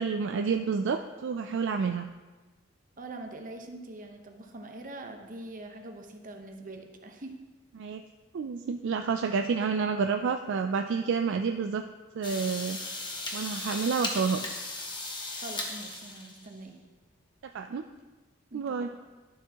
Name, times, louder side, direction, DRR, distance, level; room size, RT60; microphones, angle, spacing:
voice 1, 0.0-2.1 7.8-8.0 8.3-11.8 12.1-12.8 13.3-14.5 17.4-17.8 18.5-18.9, right 5 dB, 60° right, 6 dB, 0.3 m, -29 dB
voice 2, 3.0-7.4 15.4-16.8 18.5-18.9, right 2 dB, 40° right, 4 dB, 0.9 m, -43 dB
sound 1, 12.2-16.6, left 2 dB, 25° left, 1.0 m, -36 dB
11.5 x 7.2 x 2.9 m, 1.3 s
head